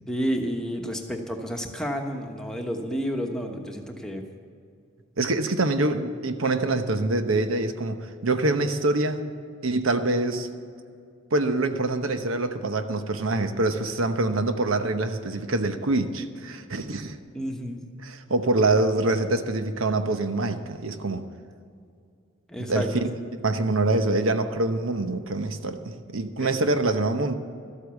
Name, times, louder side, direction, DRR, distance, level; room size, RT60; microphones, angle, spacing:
voice 1, 0.1-4.2 17.3-17.8 22.5-23.1 26.4-26.5, equal, 5° left, 2 dB, 1.2 m, -30 dB
voice 2, 5.2-9.2 9.6-10.5 11.3-17.2 18.0-21.2 22.7-22.9 23.4-27.4, right 2 dB, 90° right, 8 dB, 1.0 m, -25 dB
13.0 x 8.3 x 8.3 m, 2.4 s
head